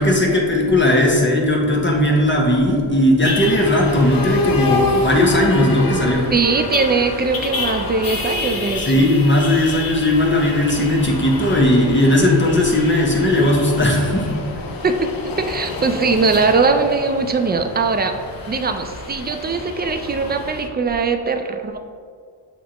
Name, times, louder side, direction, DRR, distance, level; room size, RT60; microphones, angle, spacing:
voice 1, 0.0-6.3 8.8-14.6, left 1 dB, 25° left, -2 dB, 0.9 m, -17 dB
sound 1, 3.2-20.7, left 2 dB, 45° left, 0.7 m, -28 dB
voice 2, 6.3-9.1 14.8-18.2 18.5-21.8, right 4 dB, 25° right, 6 dB, 0.3 m, -20 dB
7.2 x 2.5 x 2.9 m, 2.1 s
cardioid pair, 50°, 49 cm